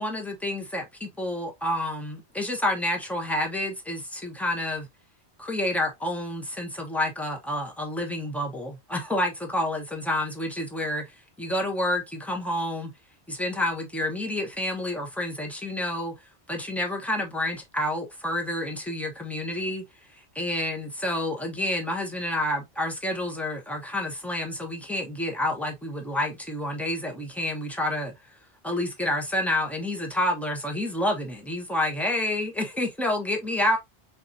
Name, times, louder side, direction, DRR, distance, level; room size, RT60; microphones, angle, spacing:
voice 1, 0.0-4.9 5.4-12.9 13.3-16.1 16.5-19.8 20.1-28.1 28.6-33.8, left 1 dB, ahead, 1.1 m, -29 dB
4.3 x 4.0 x 2.6 m
omnidirectional pair, 1.1 m